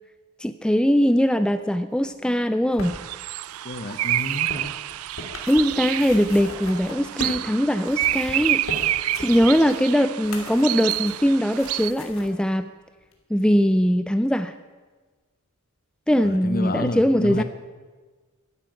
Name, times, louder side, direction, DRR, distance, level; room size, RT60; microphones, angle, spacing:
voice 1, 0.4-3.0 5.5-8.6 9.2-12.7 13.3-14.6 16.1-17.4, equal, 5° left, 10 dB, 0.5 m, -21 dB
sound 1, 2.3-7.5 7.8-12.3 13.1-13.2, left 2 dB, 70° left, 2.8 m, -38 dB
sound 2, 2.8-11.9, right 14 dB, 85° right, 0.4 m, -28 dB
voice 2, 3.6-4.7 16.2-17.4, left 2 dB, 45° left, 12 dB, 1.0 m, -30 dB
13.0 x 11.5 x 9.2 m, 1.4 s
head